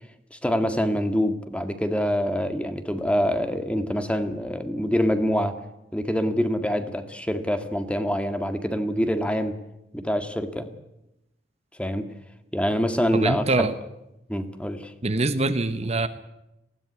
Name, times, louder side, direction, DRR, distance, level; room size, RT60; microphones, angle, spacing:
voice 1, 0.3-5.6 5.9-9.6 9.9-10.7 11.8-12.1 12.5-13.7 14.3-14.9, equal, 5° left, 8 dB, 1.8 m, -25 dB
voice 2, 13.1-13.7 15.0-16.1, right 2 dB, 40° right, 10 dB, 1.1 m, -24 dB
19.5 x 16.5 x 9.7 m, 0.89 s
head